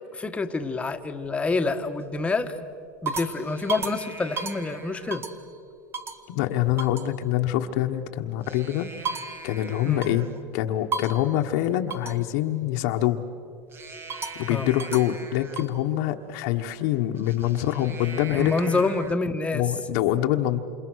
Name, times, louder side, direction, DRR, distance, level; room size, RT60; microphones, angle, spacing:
voice 1, 0.1-2.5 3.0-5.2 9.9-10.0 14.5-14.7 18.4-19.6, left 3 dB, 15° left, 6 dB, 1.5 m, -27 dB
sound 1, 0.6-1.3 1.8-2.2 2.7-5.5 5.9-6.3 6.8-7.1 8.3-10.4 10.9-11.3 11.9-12.3 13.7-15.8 17.1-19.2, right 4 dB, 25° right, 1.7 m, -36 dB
voice 2, 6.3-8.9 9.4-10.3 10.5-13.2 14.4-18.8 19.5-20.6, left 13 dB, 65° left, 4 dB, 1.4 m, -25 dB
28.5 x 28.0 x 6.4 m, 2.5 s
supercardioid pair, 130°, 9 cm